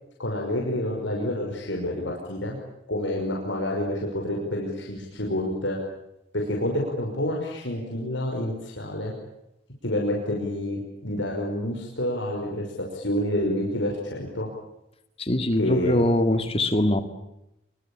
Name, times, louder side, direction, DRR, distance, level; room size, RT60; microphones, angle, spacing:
voice 1, 0.2-2.6 2.9-5.8 6.3-9.1 9.8-14.5 15.6-16.1, left 1 dB, 70° left, 5.7 m, -28 dB
voice 2, 15.2-17.0, left 1 dB, 30° left, 2.1 m, -22 dB
26.0 x 24.0 x 8.8 m
head